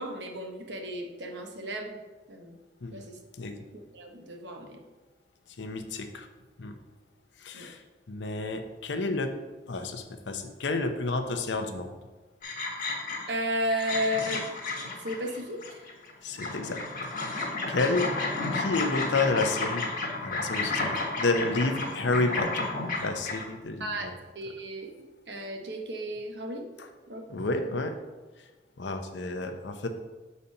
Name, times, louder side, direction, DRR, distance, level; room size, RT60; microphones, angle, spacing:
voice 1, 0.0-2.0 2.3-2.6 2.9-3.2 3.9-4.8 7.5-7.7 13.3-14.4 15.0-15.8 23.8-26.7 27.1-27.3, equal, 70° right, 2 dB, 1.1 m, -34 dB
voice 2, 5.6-6.3 6.6-6.7 7.4-7.8 8.1-9.3 9.7-11.9 16.2-16.8 17.7-18.1 18.5-19.8 20.2-22.7 23.0-23.9 27.3-27.9 28.8-29.9, left 3 dB, 80° left, 6 dB, 0.7 m, -30 dB
sound 1, 12.4-13.4 13.7-16.1 16.4-23.4, left 3 dB, 50° left, 1.3 m, -32 dB
7.0 x 4.1 x 5.3 m, 1.2 s
head